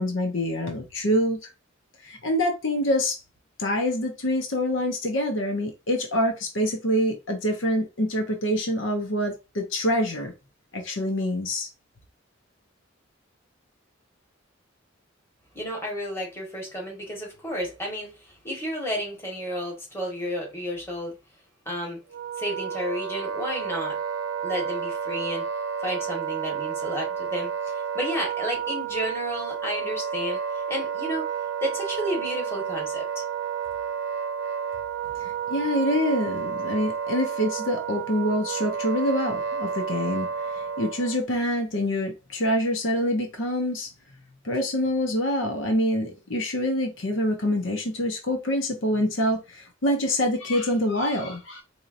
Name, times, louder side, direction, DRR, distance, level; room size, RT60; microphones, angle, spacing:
voice 1, 0.0-1.5 2.0-3.2 3.6-10.3 10.7-11.7 35.2-43.9 44.4-51.6, equal, 75° left, 0.8 m, -26 dB
voice 2, 15.5-21.2 21.6-22.0 22.4-24.0 24.4-25.4 25.8-31.3 31.6-33.2, equal, 15° left, 1.5 m, -32 dB
Wind instrument woodwind instrument, 22.1-41.2, right 7 dB, 65° right, 0.4 m, -31 dB
4.4 x 2.8 x 2.6 m
head